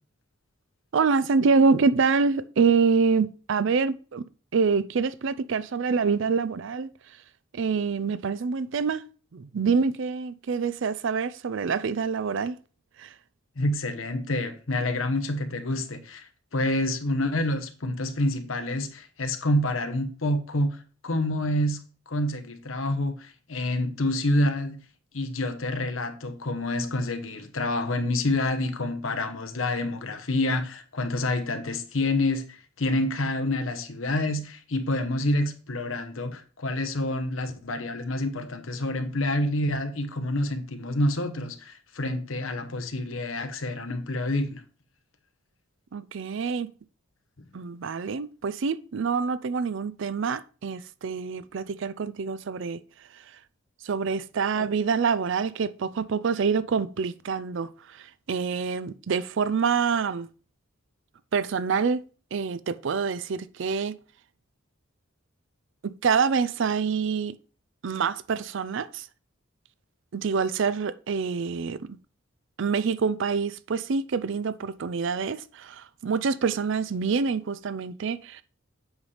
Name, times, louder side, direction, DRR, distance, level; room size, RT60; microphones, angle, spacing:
voice 1, 0.9-4.2 4.5-6.9 7.5-9.0 9.3-12.6 13.0-13.1 45.9-46.7 47.5-52.8 53.1-53.2 53.8-60.3 61.3-62.0 62.3-63.9 66.0-67.3 67.8-69.1 70.1-71.8 72.6-78.4, right 5 dB, 65° right, 0.4 m, -26 dB
voice 2, 13.6-20.8 21.0-24.8 25.1-44.6 54.5-54.7, left 1 dB, 75° left, 1.0 m, -28 dB
8.0 x 5.5 x 3.3 m
head